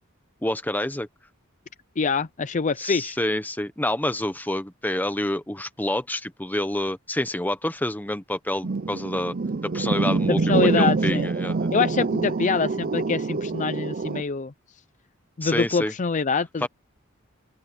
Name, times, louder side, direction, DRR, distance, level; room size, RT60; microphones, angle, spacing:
voice 1, 0.4-1.1 2.8-9.3 9.6-11.7 15.4-15.9 16.6-16.7, left 1 dB, 10° left, 1.2 m, -28 dB
voice 2, 2.0-3.2 10.3-11.3 11.7-14.5 15.4-16.7, left 5 dB, 35° left, 0.5 m, -25 dB
sound 1, 8.6-14.2, right 3 dB, 45° right, 0.6 m, -25 dB
open air
head